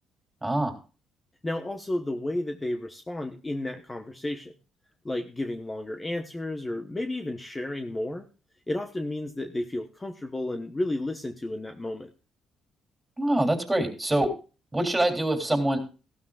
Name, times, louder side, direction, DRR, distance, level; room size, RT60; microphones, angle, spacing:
voice 1, 0.4-0.7 13.2-14.3 14.7-15.8, right 1 dB, 15° right, 3 dB, 3.3 m, -24 dB
voice 2, 1.4-4.5 5.0-8.3 8.7-12.1, left 1 dB, 20° left, 6 dB, 1.1 m, -32 dB
15.5 x 12.5 x 2.4 m, 0.33 s
cardioid pair, 85°, 0 cm